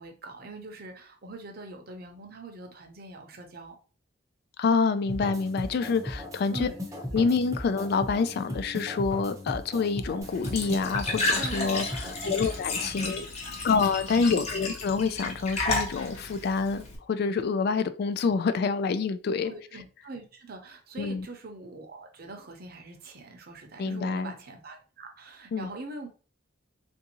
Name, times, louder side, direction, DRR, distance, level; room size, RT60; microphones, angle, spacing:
voice 1, 0.0-3.8 6.5-6.8 7.1-7.2 11.3-12.4 12.7-13.6 14.2-14.6 19.4-26.1, right 2 dB, 55° right, 0.7 m, -43 dB
voice 2, 4.6-6.7 7.1-13.3 13.6-19.5 21.0-21.3 23.8-24.3 25.5-25.7, left 5 dB, 55° left, 0.3 m, -27 dB
sound 1, 5.1-12.9, left 1 dB, 15° right, 0.6 m, -37 dB
Glass / Trickle dribble / Fill (with liquid), 10.2-17.0, left 2 dB, 35° left, 0.8 m, -32 dB
3.5 x 2.6 x 2.8 m
head